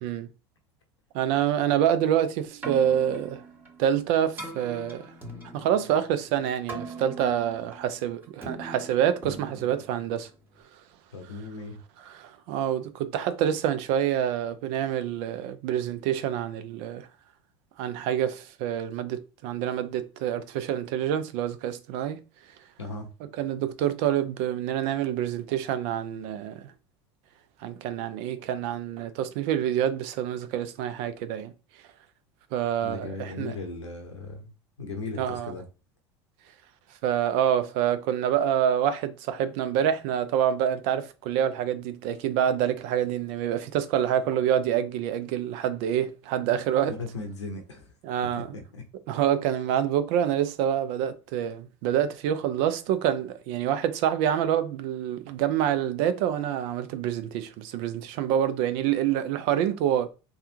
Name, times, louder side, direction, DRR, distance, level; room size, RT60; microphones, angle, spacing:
voice 1, 1.1-3.4 3.8-5.1 5.5-10.3 12.1-17.1 17.8-22.2 23.4-26.7 27.6-31.5 32.5-33.6 35.2-35.5 37.0-46.9 48.0-48.5 49.1-60.1, right 10 dB, 60° right, 0.5 m, -27 dB
Keyboard (musical), 2.5-10.6, right 3 dB, 15° right, 1.3 m, -42 dB
voice 2, 11.1-11.8 22.8-23.1 32.8-34.5 34.8-35.6 46.9-47.9 48.4-48.8, left 3 dB, 90° left, 0.8 m, -37 dB
3.4 x 2.3 x 2.8 m
hypercardioid pair, 75°, 15 cm